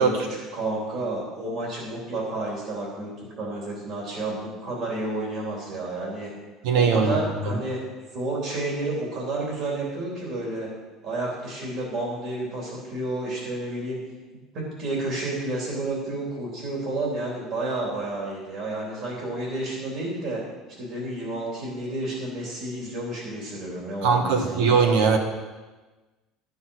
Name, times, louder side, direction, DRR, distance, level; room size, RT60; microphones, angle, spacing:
voice 1, 0.0-6.3 6.7-10.7 11.0-14.0 14.5-20.4 20.8-24.8, right 2 dB, 45° right, -4 dB, 3.2 m, -31 dB
voice 2, 6.6-7.2 7.4-7.6 24.0-25.2, right 5 dB, 75° right, 4 dB, 1.8 m, -20 dB
12.0 x 7.1 x 6.3 m, 1.2 s
cardioid pair, 180°, 0 cm